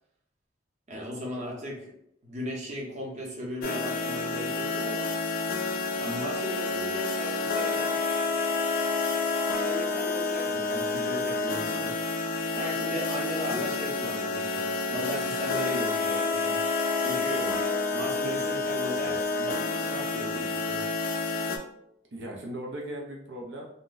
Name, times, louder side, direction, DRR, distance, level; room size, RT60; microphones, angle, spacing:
voice 1, 0.9-1.9 2.2-5.1 6.0-8.0 9.5-12.0 12.5-16.6 17.0-17.5 17.9-20.8, equal, 40° right, -2 dB, 0.7 m, -37 dB
sound 1, 3.6-21.6, left 3 dB, 55° left, 0.4 m, -29 dB
voice 2, 22.1-23.6, right 1 dB, 80° right, -1 dB, 0.5 m, -39 dB
2.5 x 2.1 x 3.8 m, 0.75 s
head